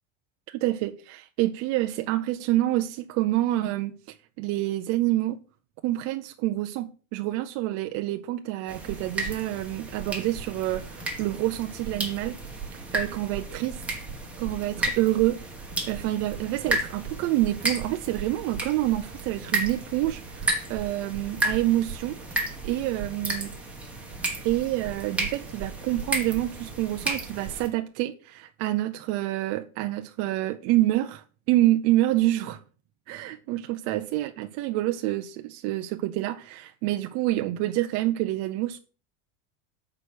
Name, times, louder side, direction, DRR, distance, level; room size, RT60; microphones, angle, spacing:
voice 1, 0.5-3.9 4.4-5.4 5.8-12.4 12.7-13.8 14.4-15.4 15.9-23.5 24.4-32.6 33.1-38.8, right 15 dB, 40° right, 0.5 m, -27 dB
sound 1, 8.7-27.7, right 2 dB, 5° right, 1.5 m, -33 dB
7.9 x 4.8 x 6.1 m
supercardioid pair, 150°, 38 cm